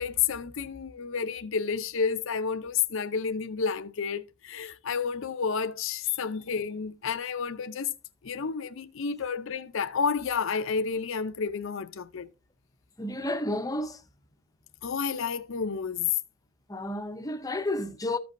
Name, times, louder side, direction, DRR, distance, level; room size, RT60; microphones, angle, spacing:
voice 1, 0.0-7.9 8.2-12.3 14.8-16.1, left 6 dB, 60° left, 0.5 m, -30 dB
voice 2, 13.0-14.1 16.7-18.2, left 1 dB, 15° left, 0.6 m, -31 dB
14.0 x 5.2 x 2.6 m
head